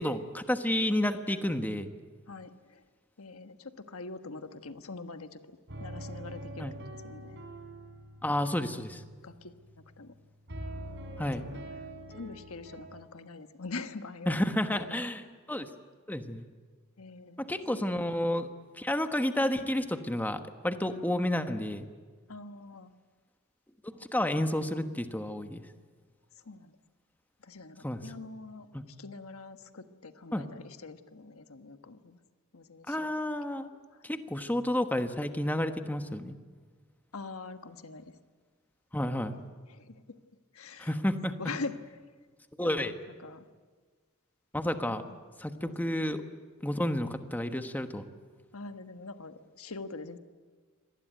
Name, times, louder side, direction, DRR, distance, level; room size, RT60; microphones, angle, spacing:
voice 1, 0.0-1.9 6.6-6.8 8.2-9.0 11.2-11.4 14.3-15.7 16.1-16.4 17.4-18.5 18.8-21.9 23.8-25.6 27.8-28.0 28.7-28.8 30.3-30.4 32.9-33.7 34.0-36.4 38.9-39.3 40.8-41.3 42.6-43.0 44.5-45.0 45.4-46.2 46.6-48.1, left 1 dB, 10° left, 8 dB, 1.2 m, -31 dB
voice 2, 2.3-2.8 3.2-7.4 8.6-8.8 9.2-10.1 11.4-11.6 12.1-15.1 17.0-17.9 22.3-22.9 26.4-26.7 27.4-32.2 32.5-33.1 33.9-34.0 37.1-38.1 39.3-39.4 39.7-40.2 40.5-41.0 41.3-41.8 42.6-43.5 44.9-45.2 45.6-45.7 48.5-50.2, left 3 dB, 75° left, 9 dB, 1.3 m, -44 dB
sound 1, 5.7-10.2 10.5-12.9, right 1 dB, 55° right, 4.3 m, -44 dB
25.0 x 19.0 x 9.2 m, 1.5 s
head